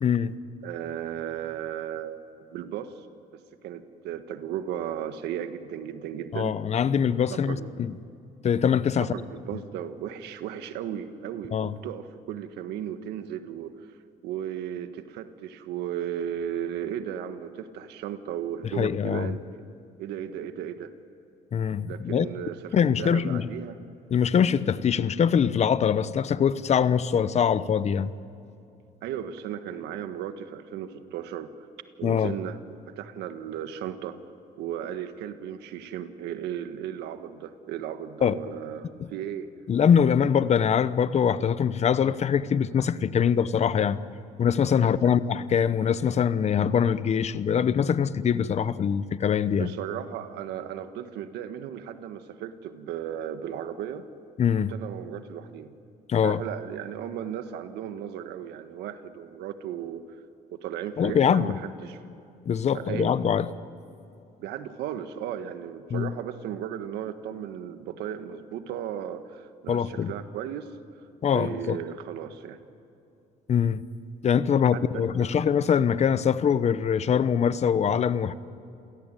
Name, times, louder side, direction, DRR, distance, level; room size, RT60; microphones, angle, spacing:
voice 1, 0.0-0.3 6.3-8.0 8.4-9.1 11.5-11.7 18.8-19.3 21.5-22.3 22.7-23.5 24.1-28.1 32.0-32.3 38.2-38.3 39.7-44.0 44.4-49.7 54.4-54.7 56.1-56.4 61.0-61.5 62.5-63.5 65.9-66.1 69.7-70.1 71.2-71.8 73.5-73.8 74.2-78.3, left 7 dB, 40° left, 15 dB, 0.9 m, -23 dB
voice 2, 0.6-3.1 3.6-6.5 7.3-7.7 9.1-13.9 14.2-19.6 20.0-20.9 21.9-23.8 29.0-31.7 32.0-32.6 32.9-34.2 34.6-39.5 44.8-45.2 49.6-54.1 54.6-55.7 56.2-60.2 60.6-62.0 62.7-63.1 64.4-70.7 71.3-72.6 74.7-75.3, right 10 dB, 85° right, 9 dB, 1.5 m, -35 dB
28.0 x 17.5 x 9.1 m, 2.7 s
cardioid pair, 110°, 17 cm